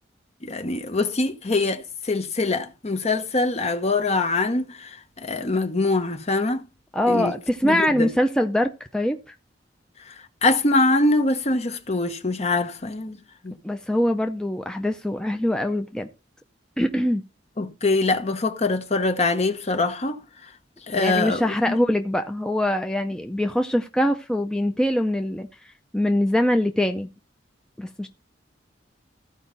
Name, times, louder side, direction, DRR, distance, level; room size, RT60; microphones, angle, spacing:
voice 1, 0.4-6.6 7.1-7.4 7.6-8.1 10.1-10.2 10.4-13.5 17.6-20.2 20.9-21.8, left 2 dB, 35° left, 1.0 m, -24 dB
voice 2, 6.9-9.3 13.6-16.1 16.8-17.2 20.9-25.5 25.9-27.1 27.8-28.1, left 1 dB, 5° left, 0.5 m, -23 dB
15.0 x 5.0 x 4.0 m
head